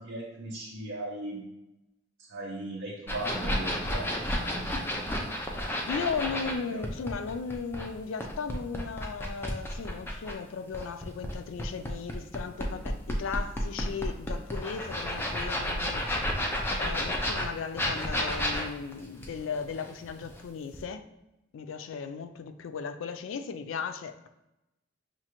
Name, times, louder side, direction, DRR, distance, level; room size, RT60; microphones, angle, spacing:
voice 1, 0.0-1.4 2.2-4.7 6.7-6.8, right 1 dB, 75° right, -3 dB, 0.6 m, -38 dB
sound 1, 3.1-6.5 6.8-10.4 10.7-20.4 20.7-20.8, equal, 10° left, 0.4 m, -31 dB
voice 2, 5.9-16.1 16.8-21.0 21.5-24.3, left 5 dB, 85° left, 10 dB, 0.3 m, -36 dB
5.8 x 2.4 x 2.9 m, 0.93 s
head